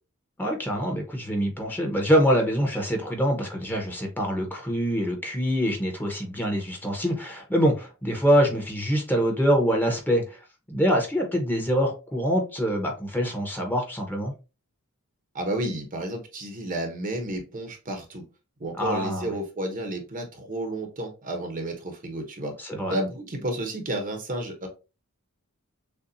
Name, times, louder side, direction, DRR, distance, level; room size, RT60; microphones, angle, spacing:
voice 1, 0.4-10.4 10.7-14.3 18.8-19.3 22.6-22.9, equal, 10° left, 2 dB, 1.0 m, -25 dB
voice 2, 15.3-18.2 18.6-22.5 22.9-24.7, right 1 dB, 40° right, 5 dB, 0.9 m, -31 dB
6.7 x 2.4 x 2.6 m, 0.31 s
head